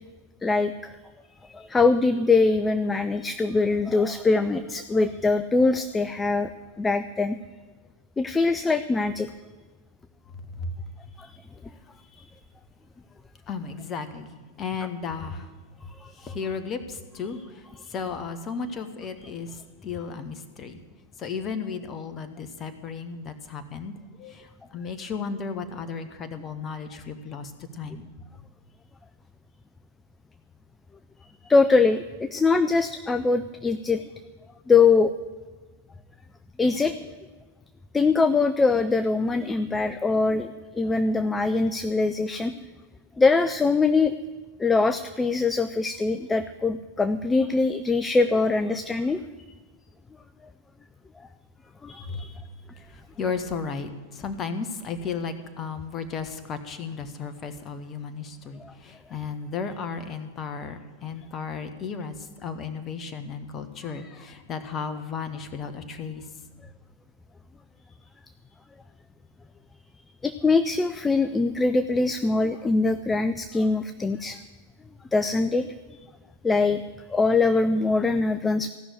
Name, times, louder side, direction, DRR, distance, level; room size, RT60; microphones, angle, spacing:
voice 1, 0.4-0.9 1.5-6.5 6.8-7.4 8.2-9.3 11.2-11.3 31.5-34.0 34.7-35.1 36.6-37.0 37.9-42.5 43.2-44.1 44.6-49.2 51.8-52.3 70.2-74.4 75.1-75.7 76.4-76.8 77.1-78.7, left 3 dB, 10° left, 10 dB, 0.5 m, -22 dB
voice 2, 13.5-15.5 16.2-20.8 21.2-28.1 52.1-52.4 52.9-66.3, left 5 dB, 30° left, 8 dB, 1.3 m, -34 dB
16.0 x 6.2 x 9.5 m, 1.4 s
figure-of-eight pair, 90°, 0 cm